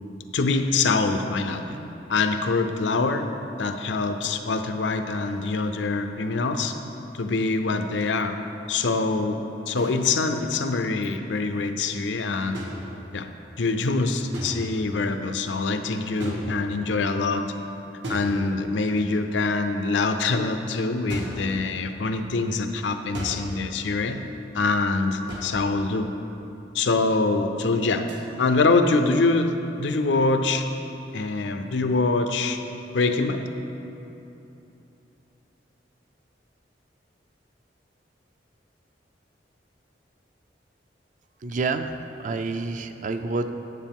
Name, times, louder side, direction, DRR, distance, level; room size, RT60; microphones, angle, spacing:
voice 1, 0.3-1.8 2.1-3.3 3.6-6.7 7.1-8.4 8.7-9.4 9.7-12.6 13.1-13.3 13.6-17.5 18.1-24.2 24.5-26.1 26.7-28.1 28.4-30.6 31.1-32.6 32.9-33.4, left 3 dB, 85° left, 7 dB, 0.5 m, -24 dB
sound 1, 9.8-10.0 12.5-13.4 14.3-14.9 16.2-17.0 18.0-18.9 21.1-21.5 23.1-23.7 25.3-25.7 28.1-28.3, equal, 90° right, 1.6 m, -35 dB
voice 2, 41.4-43.5, right 3 dB, 45° right, 8 dB, 0.4 m, -28 dB
9.5 x 7.5 x 3.6 m, 2.9 s
head